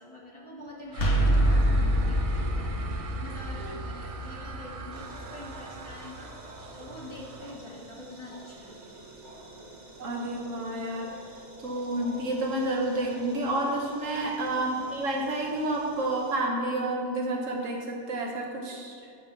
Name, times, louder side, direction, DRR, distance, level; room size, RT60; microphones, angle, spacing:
voice 1, 0.0-8.8 14.6-14.9, left 1 dB, 25° left, -4 dB, 1.2 m, -46 dB
sound 1, 0.9-6.6, right 1 dB, 75° left, 1.5 m, -27 dB
sound 2, 0.9-7.6, right 4 dB, 65° right, 0.3 m, -44 dB
sound 3, 4.9-16.4, right 1 dB, 35° right, 1.1 m, -48 dB
voice 2, 10.0-11.1 11.6-18.9, right 1 dB, 80° right, 0 dB, 1.5 m, -30 dB
11.0 x 3.7 x 5.8 m, 2.3 s
omnidirectional pair, 1.3 m